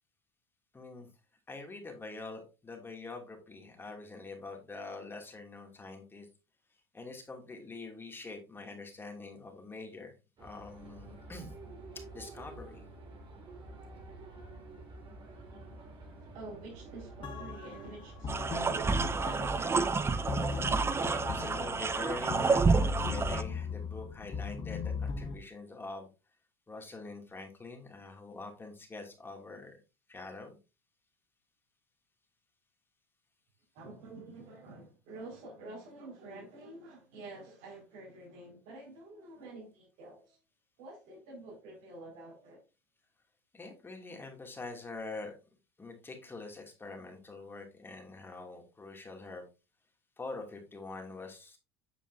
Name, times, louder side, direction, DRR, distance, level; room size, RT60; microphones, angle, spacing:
voice 1, 0.7-1.1 1.5-6.3 6.9-11.5 11.9-12.8 20.3-20.8 21.1-26.1 26.7-29.8 30.1-30.6 43.5-45.3 45.8-49.4 50.2-51.6, left 3 dB, 15° left, 2.6 m, -45 dB
sound 1, 10.4-21.0, right 2 dB, 40° right, 3.3 m, -49 dB
voice 2, 15.8-20.1 20.6-20.7 33.7-40.4 40.8-42.6, right 2 dB, 65° right, 5.2 m, -48 dB
sound 2, 17.2-25.4, left 5 dB, 40° left, 1.3 m, -39 dB
sound 3, 18.3-23.4, right 4 dB, 20° right, 0.7 m, -29 dB
8.6 x 6.9 x 2.7 m
hypercardioid pair, 90°, 13 cm